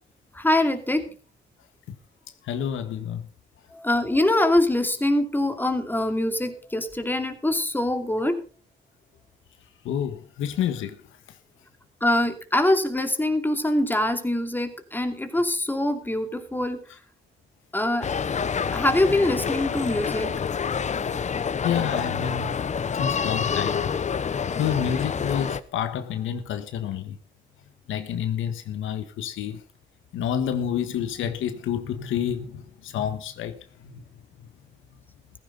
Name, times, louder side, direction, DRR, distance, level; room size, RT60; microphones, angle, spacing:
voice 1, 0.3-1.1 3.7-8.4 12.0-16.8 17.7-18.1 18.7-20.3, left 1 dB, 10° left, 2.6 m, -24 dB
voice 2, 2.4-3.3 9.8-11.0 21.6-22.5 22.9-24.0 24.6-27.2 27.9-29.6 30.1-34.0, left 9 dB, 80° left, 1.5 m, -29 dB
sound 1, 18.0-25.6, left 6 dB, 35° left, 0.8 m, -27 dB
15.5 x 14.5 x 4.0 m
cardioid pair, 90°, 20 cm